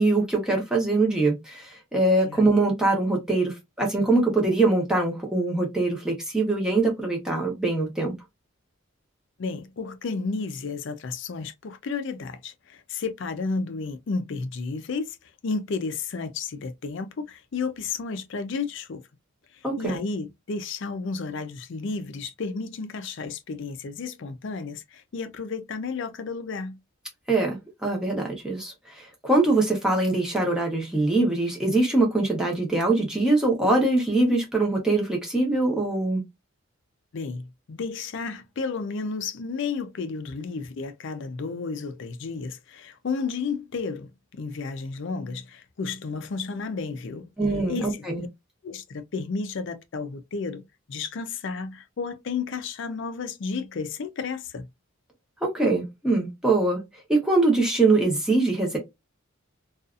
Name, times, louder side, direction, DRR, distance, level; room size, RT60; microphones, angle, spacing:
voice 1, 0.0-8.1 19.6-20.0 27.3-36.2 47.4-48.2 55.4-56.8 57.1-58.8, right 2 dB, 5° right, 0.9 m, -23 dB
voice 2, 9.4-15.2 15.4-19.0 19.5-26.8 37.1-47.3 47.7-48.3 48.6-50.6 50.9-54.7, left 4 dB, 55° left, 0.4 m, -32 dB
2.6 x 2.4 x 2.3 m
head